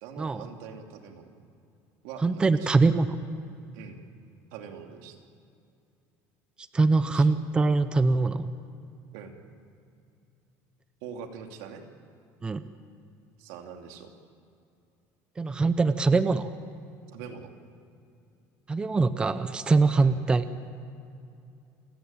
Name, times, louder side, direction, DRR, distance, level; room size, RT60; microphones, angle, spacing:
voice 1, 0.0-1.3 2.0-2.8 3.7-4.0 4.5-5.2 6.9-7.4 9.1-9.3 11.0-11.8 13.4-14.1 17.1-17.5 19.9-20.1, right 7 dB, 85° right, 4 dB, 2.8 m, -43 dB
voice 2, 2.2-3.2 6.7-8.6 12.4-12.6 15.4-16.5 18.7-20.4, right 3 dB, 15° right, 12 dB, 0.7 m, -23 dB
29.0 x 16.5 x 8.9 m, 2.6 s
cardioid pair, 165°, 7 cm